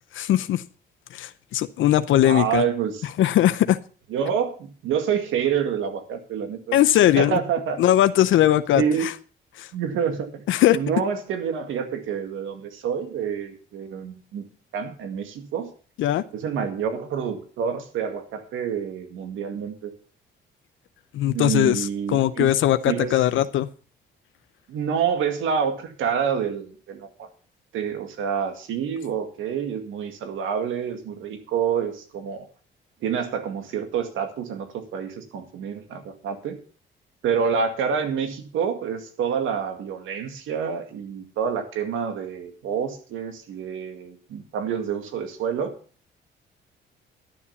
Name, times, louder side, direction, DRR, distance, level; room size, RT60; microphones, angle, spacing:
voice 1, 0.1-0.6 1.1-2.6 3.2-3.8 6.7-7.4 7.8-9.1 9.6-9.7 10.5-10.8 16.0-16.2 21.1-23.7, left 12 dB, 75° left, 12 dB, 0.7 m, -20 dB
voice 2, 2.2-3.0 4.1-7.8 8.7-9.1 9.7-10.4 10.7-14.4 14.7-15.7 16.3-19.9 21.3-22.5 22.8-23.5 24.7-27.3 27.7-32.5 33.0-36.6 37.2-45.8, right 7 dB, 85° right, 7 dB, 2.1 m, -27 dB
11.5 x 7.3 x 6.9 m, 0.39 s
cardioid pair, 90°, 20 cm